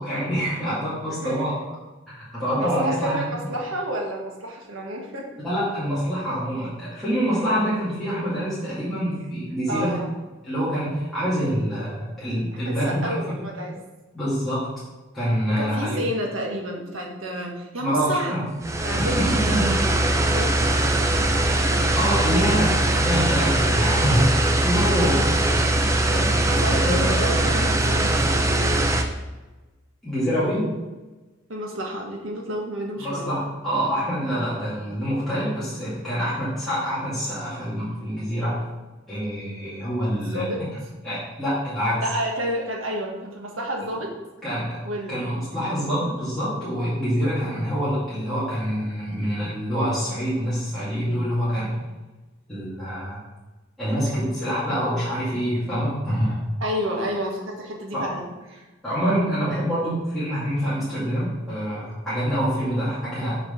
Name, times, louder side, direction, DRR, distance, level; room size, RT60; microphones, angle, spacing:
voice 1, 0.0-1.6 2.1-3.2 5.4-10.0 10.4-13.4 14.1-14.7 15.1-16.0 17.8-18.4 18.8-19.6 21.9-25.2 26.0-26.3 26.7-27.1 30.0-30.7 33.0-38.6 39.1-40.4 41.0-42.0 44.4-44.8 45.1-51.8 52.5-53.2 53.8-56.4 57.9-58.1 58.8-63.4, equal, ahead, -13 dB, 2.3 m, -26 dB
voice 2, 1.0-1.4 2.6-5.2 9.7-10.1 12.6-13.8 15.6-18.3 18.8-20.9 25.0-25.2 26.1-28.9 31.5-33.3 40.1-40.6 42.0-44.1 44.8-45.2 45.6-45.9 56.6-58.2 58.5-58.6, equal, 80° right, 0 dB, 1.5 m, -30 dB
sound 1, 18.6-29.0, right 1 dB, 15° right, 0.5 m, -21 dB
6.4 x 5.0 x 5.1 m, 1.2 s
head